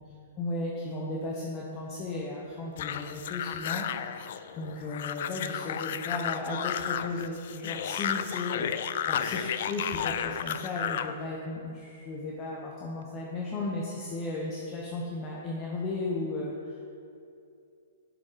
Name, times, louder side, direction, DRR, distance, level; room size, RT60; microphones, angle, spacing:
voice 1, 0.4-16.8, left 2 dB, 30° left, -3 dB, 0.9 m, -35 dB
sound 1, 2.8-11.2, left 9 dB, 60° left, 0.3 m, -33 dB
6.9 x 5.1 x 5.0 m, 2.6 s
hypercardioid pair, 135°, 0 cm